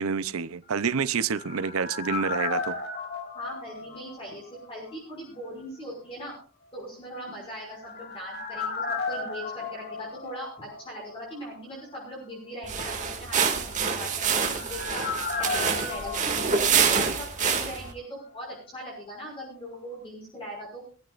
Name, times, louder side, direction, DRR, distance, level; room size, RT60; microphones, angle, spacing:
voice 1, 0.0-2.8, right 6 dB, 85° right, 0.7 m, -28 dB
sound 1, 0.8-4.6 4.9-5.0 7.4-11.1 11.4-11.5 13.7-17.6 17.8-17.9, left 4 dB, 50° left, 2.8 m, -35 dB
voice 2, 3.3-6.3 6.7-15.1 15.4-20.8, equal, 25° left, 6.0 m, -40 dB
sound 2, 12.6-17.9, right 6 dB, 35° right, 2.3 m, -26 dB
22.5 x 14.5 x 2.5 m
head